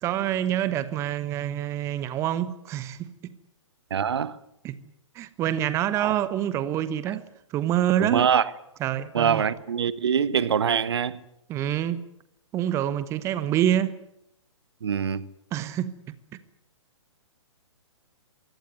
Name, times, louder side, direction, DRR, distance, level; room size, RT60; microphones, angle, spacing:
voice 1, 0.0-3.1 4.6-4.8 5.1-7.2 7.5-8.3 8.8-9.4 11.5-12.0 12.5-14.0 15.5-15.9, right 11 dB, 15° right, 1.0 m, -26 dB
voice 2, 3.9-4.4 6.0-6.1 7.1-7.2 8.0-8.4 9.1-11.2 14.8-15.3, right 7 dB, 55° right, 1.3 m, -24 dB
23.0 x 17.0 x 9.4 m
figure-of-eight pair, 125°, 16 cm